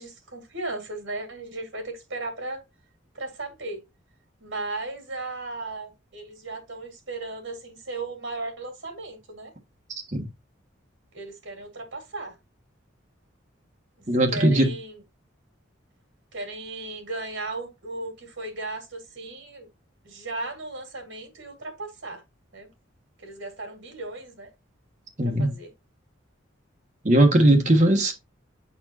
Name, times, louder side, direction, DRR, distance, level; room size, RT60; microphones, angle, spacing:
voice 1, 0.0-2.6 3.1-3.8 4.4-9.5 11.1-12.4 14.0-15.0 16.3-19.7 20.0-22.2 22.5-22.7 23.2-24.5 25.2-25.7, right 2 dB, 75° right, 2.2 m, -36 dB
voice 2, 14.1-14.7 25.2-25.5 27.0-28.1, right 1 dB, 40° right, 1.2 m, -19 dB
8.8 x 4.3 x 2.8 m
head